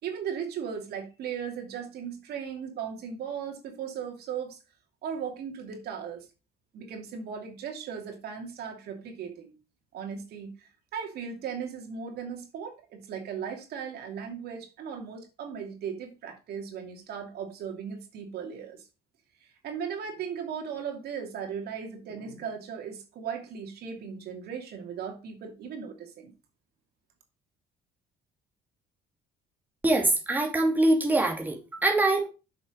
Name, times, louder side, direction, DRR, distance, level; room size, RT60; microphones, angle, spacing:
voice 1, 0.0-4.6 5.0-6.3 6.7-9.5 9.9-18.8 19.4-26.3, right 7 dB, 70° right, 3 dB, 2.6 m, -37 dB
voice 2, 29.8-32.3, right 2 dB, 10° right, 2 dB, 2.5 m, -24 dB
7.5 x 6.5 x 5.0 m, 0.30 s
cardioid pair, 110°, 17 cm